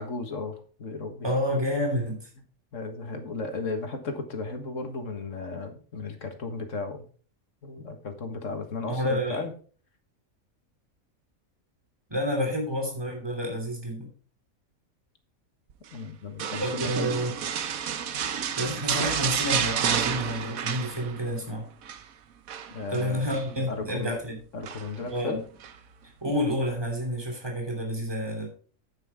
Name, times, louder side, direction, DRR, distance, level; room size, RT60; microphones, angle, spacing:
voice 1, 0.0-1.3 2.7-7.1 7.6-9.5 12.5-12.6 15.9-17.1 22.7-23.3 23.7-24.2 24.5-25.4, left 3 dB, 60° left, 6 dB, 1.9 m, -35 dB
voice 2, 1.2-2.3 8.9-9.4 12.1-14.1 16.6-17.3 18.6-21.7 22.9-24.4 25.1-25.4 26.2-28.5, equal, 15° right, 2 dB, 3.2 m, -29 dB
sound 1, 16.4-21.4 21.7-22.0 22.5-23.5 24.6-25.1 25.6-25.8, right 8 dB, 80° right, 1.3 m, -30 dB
9.3 x 9.2 x 3.6 m, 0.41 s
omnidirectional pair, 1.5 m